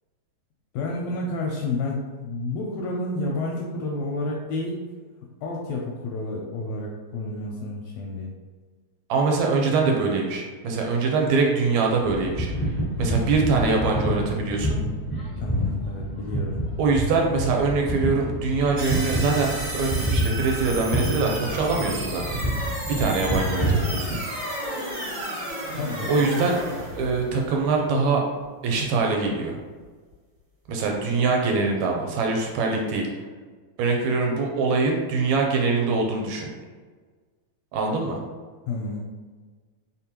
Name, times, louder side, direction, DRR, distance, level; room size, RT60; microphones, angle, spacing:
voice 1, 0.7-4.8 5.4-8.3 13.4-13.6 15.4-16.6 25.7-26.4 38.7-39.0, left 2 dB, 80° left, -1 dB, 1.5 m, -30 dB
voice 2, 9.1-14.8 16.8-24.2 26.1-26.6 26.9-28.2 28.6-29.6 30.7-33.1 33.8-36.5 37.7-38.2, right 4 dB, 80° right, 1 dB, 1.8 m, -24 dB
sound 1, 12.0-24.2, equal, 40° left, 0.6 m, -28 dB
sound 2, 18.8-28.0, right 1 dB, 50° right, 1.8 m, -33 dB
4.3 x 3.7 x 2.9 m, 1.4 s
omnidirectional pair, 3.4 m